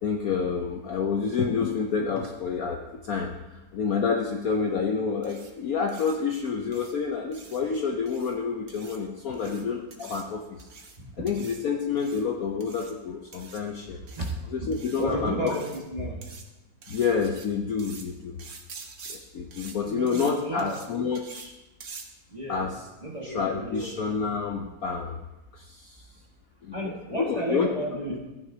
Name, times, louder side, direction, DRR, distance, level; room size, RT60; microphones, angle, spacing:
voice 1, 0.0-10.7 11.2-14.0 14.5-15.5 16.9-18.4 19.1-21.5 22.5-22.9 23.2-25.2 25.5-26.1 26.6-27.7, left 5 dB, 60° left, 3 dB, 1.0 m, -29 dB
sound 1, 5.2-5.5 5.9-6.2 6.7-6.9 7.3-7.6 8.1-8.3 8.7-9.0 9.3-9.6 9.9-10.2 10.6-11.0 11.3-11.6 12.0-12.2 12.6-12.9 13.3-13.6 14.1-14.3 14.7-15.0 15.5-15.8 16.2-16.4 16.8-17.5 17.8-18.1 18.4-19.2 19.5-19.8 20.1-20.3 20.6-20.9 21.2-21.5 21.8-22.1, right 4 dB, 45° right, 1.2 m, -45 dB
voice 2, 15.0-16.3 19.9-20.8 22.3-22.7 23.0-23.9 26.7-28.2, right 1 dB, 20° right, -3 dB, 1.6 m, -32 dB
15.0 x 9.6 x 2.8 m, 1.0 s
omnidirectional pair, 2.1 m